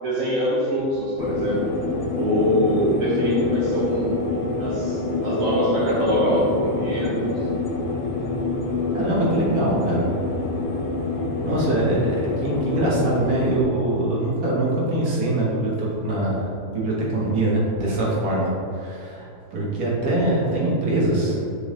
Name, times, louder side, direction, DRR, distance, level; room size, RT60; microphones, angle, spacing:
voice 1, 0.0-1.7 2.1-4.2 4.6-7.3, equal, 65° right, -6 dB, 1.2 m, -23 dB
sound 1, 1.2-13.6, left 3 dB, 60° left, 0.7 m, -26 dB
voice 2, 8.9-10.1 11.4-21.4, right 1 dB, 80° right, -6 dB, 1.7 m, -23 dB
4.2 x 3.4 x 3.7 m, 2.6 s
omnidirectional pair, 1.6 m